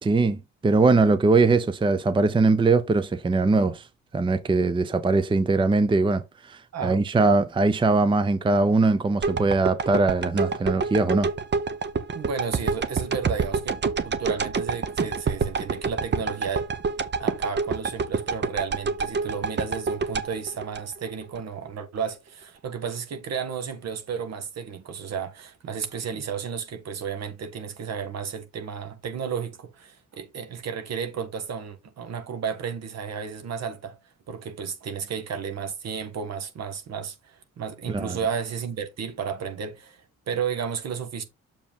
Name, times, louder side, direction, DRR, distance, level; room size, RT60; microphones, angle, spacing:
voice 1, 0.0-3.8 4.1-11.3 37.9-38.2, right 3 dB, 15° right, 0.6 m, -21 dB
voice 2, 6.7-7.3 12.1-16.7 17.2-34.0 34.3-41.2, right 6 dB, 60° right, 1.5 m, -33 dB
sound 1, 9.2-21.4 21.8-21.9, right 4 dB, 35° right, 0.9 m, -27 dB
7.1 x 4.8 x 3.6 m
cardioid pair, 90°, 30 cm